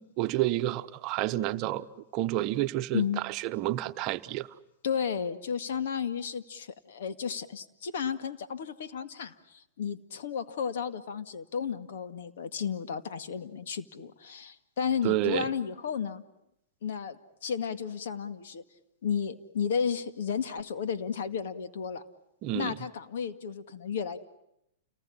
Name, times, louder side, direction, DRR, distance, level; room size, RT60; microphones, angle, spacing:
voice 1, 0.0-1.9 2.1-4.5 15.0-15.5 22.4-22.8, right 15 dB, 35° right, 1.1 m, -30 dB
voice 2, 2.9-3.2 4.8-16.2 16.8-18.6 19.0-22.0 22.5-24.2, left 7 dB, 70° left, 2.1 m, -33 dB
29.5 x 20.0 x 10.0 m
hypercardioid pair, 150°, 0 cm